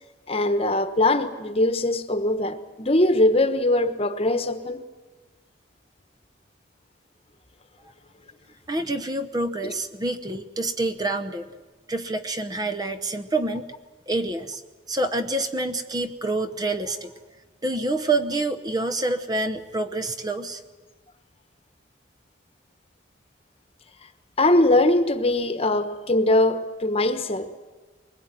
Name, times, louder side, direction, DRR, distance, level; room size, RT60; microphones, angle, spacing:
voice 1, 0.3-4.8 9.6-9.7 24.4-27.5, left 1 dB, 30° left, 1.2 m, -21 dB
voice 2, 8.7-11.5 11.9-13.7 14.1-14.6 14.9-17.1 17.6-20.6, right 2 dB, 20° right, 0.9 m, -27 dB
22.5 x 20.5 x 9.1 m
head